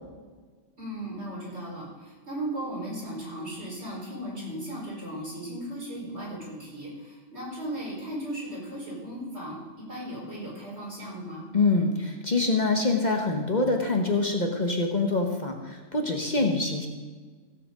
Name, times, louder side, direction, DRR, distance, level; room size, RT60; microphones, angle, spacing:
voice 1, 0.8-11.5, right 1 dB, 60° right, -5 dB, 4.8 m, -36 dB
voice 2, 11.5-16.9, left 3 dB, 40° left, 3 dB, 1.2 m, -25 dB
16.0 x 7.7 x 5.3 m, 1.4 s
omnidirectional pair, 1.2 m